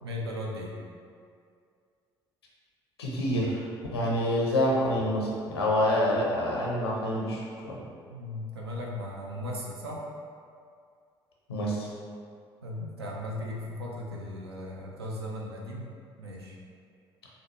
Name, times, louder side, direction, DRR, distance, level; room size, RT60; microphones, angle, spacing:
voice 1, 0.0-0.7 8.1-10.1 12.6-15.9 16.2-16.6, left 1 dB, 80° right, -2 dB, 0.4 m, -37 dB
voice 2, 3.0-7.8 11.5-11.9, left 1 dB, 80° left, -4 dB, 0.5 m, -27 dB
4.0 x 2.1 x 2.9 m, 2.3 s
figure-of-eight pair, 50°, 13 cm